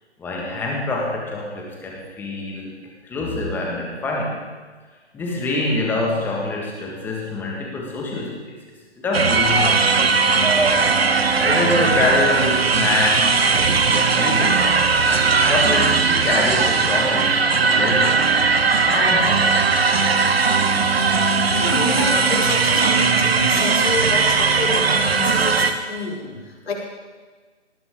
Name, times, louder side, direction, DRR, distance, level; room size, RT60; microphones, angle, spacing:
voice 1, 0.2-2.7 3.0-4.4 5.1-8.6 9.0-10.2 11.4-14.9 15.5-18.3 18.9-19.9, left 2 dB, 5° left, -1 dB, 1.7 m, -25 dB
sound 1, 9.1-25.7, right 4 dB, 60° right, 1.3 m, -18 dB
voice 2, 21.6-26.7, left 1 dB, 60° left, -3 dB, 5.3 m, -27 dB
19.0 x 16.5 x 3.8 m, 1.4 s
figure-of-eight pair, 145°, 35 cm